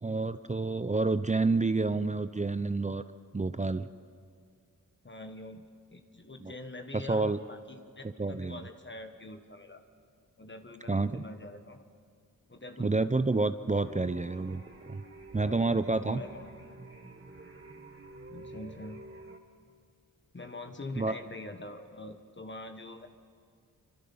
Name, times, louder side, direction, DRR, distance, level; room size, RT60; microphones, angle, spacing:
voice 1, 0.0-3.0 3.3-3.9 6.4-6.5 6.9-7.4 8.2-8.6 10.9-11.2 12.8-14.6 14.9-15.0 15.3-16.2 21.0-21.1, right 3 dB, 20° right, 12 dB, 0.6 m, -29 dB
voice 2, 5.0-9.8 10.4-11.8 12.5-13.2 15.3-16.5 18.3-19.1 20.3-23.1, left 2 dB, 35° left, 6 dB, 1.3 m, -44 dB
sound 1, 13.8-19.4, right 2 dB, 40° right, 2.3 m, -49 dB
26.5 x 25.0 x 5.6 m, 2.1 s
cardioid pair, 60°, 34 cm